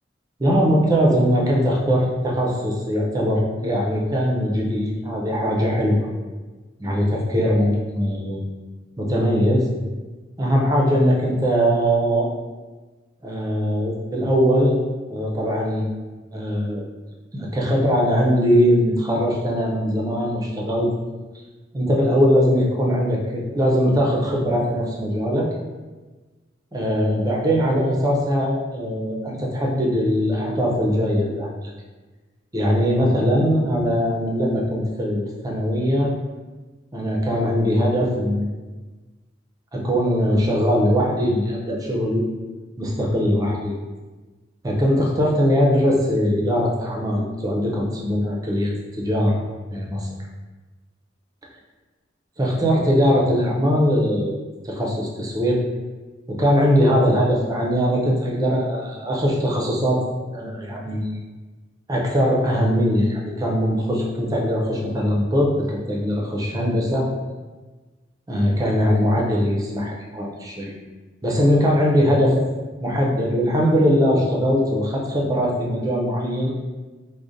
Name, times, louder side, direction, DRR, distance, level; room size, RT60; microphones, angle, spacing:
voice 1, 0.4-6.1 6.8-8.4 9.0-9.7 10.4-12.3 13.2-14.8 15.1-15.9 16.3-16.8 17.3-20.9 21.7-25.5 26.7-31.7 32.5-36.1 36.9-38.5 39.7-42.2 42.8-43.8 44.6-49.4 49.7-50.1 52.4-54.4 54.6-55.6 56.3-60.0 60.3-61.2 61.9-67.1 68.3-70.7 71.2-72.4 72.8-76.5, equal, 20° right, -2 dB, 0.5 m, -21 dB
4.8 x 2.1 x 2.5 m, 1.3 s
head